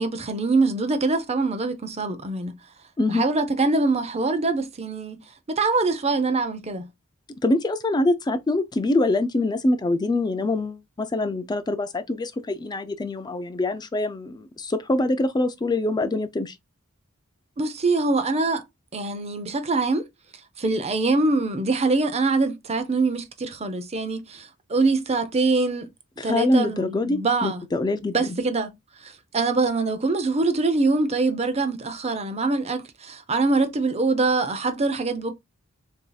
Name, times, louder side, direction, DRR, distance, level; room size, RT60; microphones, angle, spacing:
voice 1, 0.0-2.6 3.1-5.2 5.5-6.9 17.6-18.6 18.9-20.0 20.6-25.9 26.2-27.6 28.1-28.7 29.0-35.3, right 3 dB, 30° right, 0.6 m, -24 dB
voice 2, 7.4-16.6 26.2-28.4, left 2 dB, 20° left, 0.3 m, -24 dB
7.0 x 2.7 x 2.2 m
head